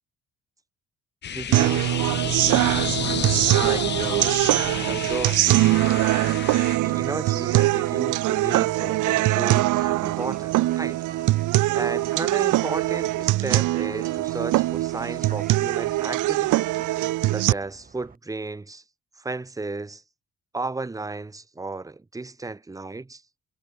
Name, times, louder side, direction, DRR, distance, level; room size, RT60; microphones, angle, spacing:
sound 1, 1.2-6.8, left 9 dB, 35° left, 0.6 m, -31 dB
voice 1, 1.3-2.0 3.6-4.4 4.8-5.4 6.5-11.0 11.7-16.7 17.2-18.8 19.2-20.0 20.5-23.2, right 3 dB, 10° right, 1.0 m, -34 dB
sound 2, 1.5-17.5, right 17 dB, 85° right, 0.9 m, -22 dB
Train, 2.7-18.2, right 5 dB, 30° right, 4.5 m, -48 dB
cardioid pair, 135°, 30 cm